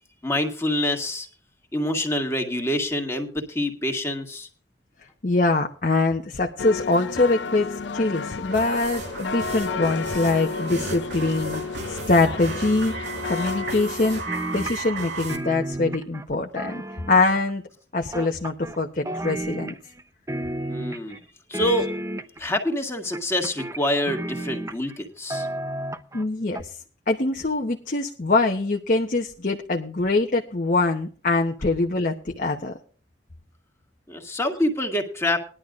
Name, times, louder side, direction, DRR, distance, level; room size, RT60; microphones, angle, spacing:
voice 1, 0.2-1.3 1.7-4.5 20.7-21.2 21.5-21.9 22.4-25.5 34.1-35.4, left 1 dB, 15° left, 4 dB, 1.9 m, -26 dB
voice 2, 5.2-12.9 13.2-17.6 17.9-19.8 26.1-26.8 27.1-32.7, left 3 dB, 45° left, 3 dB, 1.0 m, -23 dB
sound 1, 6.6-14.2, left 5 dB, 85° left, 0.6 m, -32 dB
sound 2, 8.5-15.4, right 3 dB, 80° right, 2.3 m, -34 dB
sound 3, 14.3-15.0 15.3-17.5 18.1-18.8 19.1-20.0 20.3-21.2 21.5-22.5 23.1-25.0 25.3-26.2 26.6-26.7, right 1 dB, 15° right, 0.7 m, -32 dB
20.5 x 11.5 x 2.5 m, 0.42 s
head